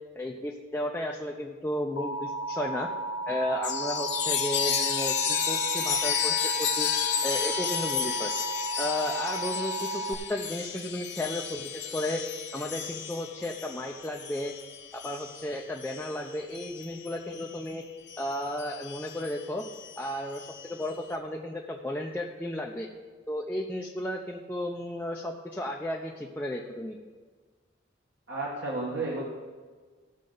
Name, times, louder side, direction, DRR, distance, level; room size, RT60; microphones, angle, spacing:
voice 1, 0.1-2.9 3.3-6.9 7.2-8.3 8.8-12.2 12.5-14.5 15.0-17.8 18.2-19.6 20.0-22.9 23.3-27.0, left 1 dB, 10° left, -1 dB, 0.6 m, -33 dB
Alarm, 2.0-10.1, right 2 dB, 85° left, 0.8 m, -34 dB
Chime, 3.6-17.6 18.1-20.9, left 9 dB, 60° left, 1.0 m, -33 dB
voice 2, 28.3-29.2, right 2 dB, 60° right, -4 dB, 1.5 m, -32 dB
16.5 x 6.4 x 3.9 m, 1.5 s
head